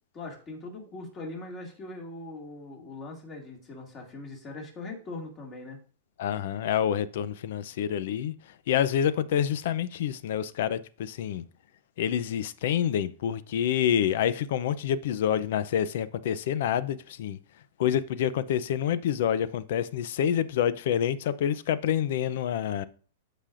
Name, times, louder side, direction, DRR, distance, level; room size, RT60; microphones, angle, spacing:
voice 1, 0.1-5.8, left 2 dB, 25° left, 2.2 m, -41 dB
voice 2, 6.2-11.4 12.0-17.4 17.8-22.9, left 9 dB, 60° left, 0.5 m, -27 dB
13.0 x 5.0 x 2.6 m
supercardioid pair, 155°, 0 cm